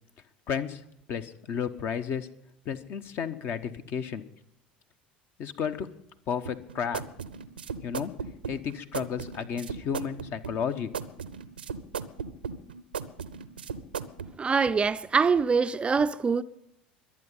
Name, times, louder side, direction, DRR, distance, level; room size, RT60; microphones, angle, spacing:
voice 1, 0.5-0.8 1.1-2.3 2.7-4.2 5.4-5.9 6.3-7.0 7.8-8.1 8.5-10.9, left 7 dB, 45° left, 1.0 m, -32 dB
sound 1, 6.4-14.3, right 6 dB, 80° right, 0.7 m, -37 dB
voice 2, 14.4-16.4, right 5 dB, 20° right, 0.5 m, -24 dB
23.0 x 8.7 x 5.5 m
figure-of-eight pair, 70°, 5 cm